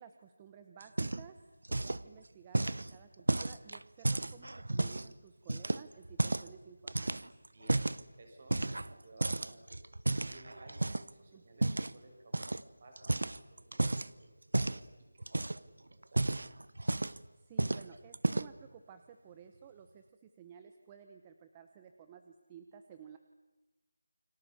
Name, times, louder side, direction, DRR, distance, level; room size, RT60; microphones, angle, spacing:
voice 1, 0.0-7.2 11.3-11.4 17.0-23.2, right 8 dB, 10° right, 8 dB, 0.8 m, -55 dB
sound 1, 0.8-1.4 1.6-2.0 2.5-5.1 5.5-6.5 6.9-8.0 8.5-9.0 9.2-11.1 11.6-11.9 12.3-12.6 13.0-14.1 14.5-14.8 15.2-15.7 16.0-17.3 17.6-17.9 18.1-18.6, right 2 dB, 80° right, 1.0 m, -32 dB
voice 2, 8.2-8.6 8.8-9.8 10.2-14.3 14.6-16.2, right 2 dB, 35° right, 3 dB, 6.4 m, -57 dB
29.0 x 24.5 x 7.1 m, 1.2 s
figure-of-eight pair, 175°, 0 cm